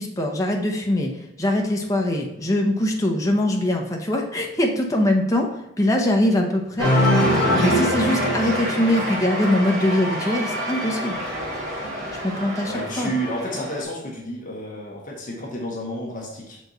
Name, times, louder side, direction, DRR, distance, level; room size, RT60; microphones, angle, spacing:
voice 1, 0.0-6.9 7.6-11.2 12.2-13.1, left 1 dB, 15° left, 1 dB, 0.7 m, -22 dB
Cheering, 6.8-13.8, equal, 60° right, 2.6 m, -24 dB
voice 2, 12.7-16.6, right 1 dB, 45° left, -1 dB, 1.1 m, -30 dB
6.6 x 4.6 x 4.0 m, 0.90 s
head